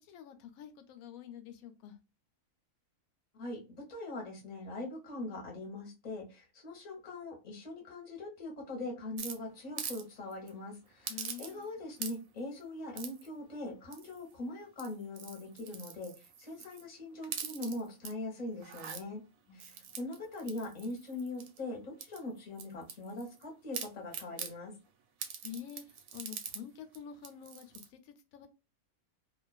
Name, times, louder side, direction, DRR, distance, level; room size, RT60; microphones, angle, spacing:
voice 1, 0.0-2.0 11.1-11.7 19.5-20.0 25.4-28.5, left 9 dB, 75° left, 1.0 m, -48 dB
voice 2, 3.9-19.2 19.5-24.7, left 2 dB, 30° left, 0.9 m, -41 dB
sound 1, 9.2-10.0 10.3-10.5 11.1-11.7 12.0-12.4 13.0-13.3 13.9-14.3 14.7-16.8 17.2-18.1 18.6-19.0 19.6-21.6 22.0-23.4 23.7-24.5 25.2-26.6 26.9-27.0 27.2-27.9, right 7 dB, 75° right, 1.0 m, -43 dB
2.4 x 2.3 x 2.2 m
omnidirectional pair, 1.6 m